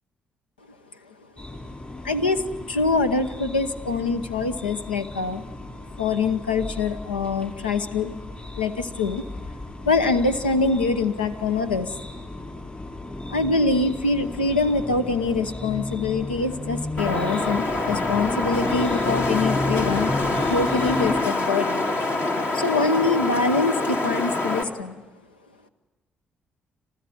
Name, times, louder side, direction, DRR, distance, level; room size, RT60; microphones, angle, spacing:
sound 1, 1.4-21.2, left 2 dB, 25° left, 5.5 m, -34 dB
voice 1, 2.0-5.4 6.0-8.2 8.6-9.2 9.8-12.2 13.3-20.1 20.5-21.9 22.5-25.0, left 3 dB, 90° left, 10 dB, 0.9 m, -24 dB
Wind, 17.0-24.6, left 2 dB, 50° left, 2.5 m, -25 dB
27.0 x 15.0 x 9.4 m, 1.2 s
hypercardioid pair, 45°, 5 cm